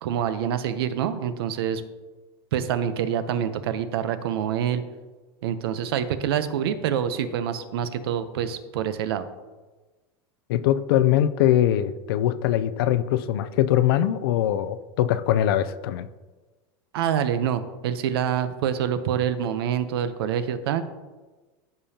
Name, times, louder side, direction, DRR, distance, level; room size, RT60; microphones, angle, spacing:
voice 1, 0.0-1.8 2.5-4.8 5.4-9.3 16.9-20.8, right 9 dB, 85° right, 11 dB, 0.8 m, -26 dB
voice 2, 10.5-16.1, left 12 dB, 70° left, 14 dB, 0.5 m, -22 dB
14.5 x 5.2 x 2.9 m, 1.3 s
supercardioid pair, 155°, 13 cm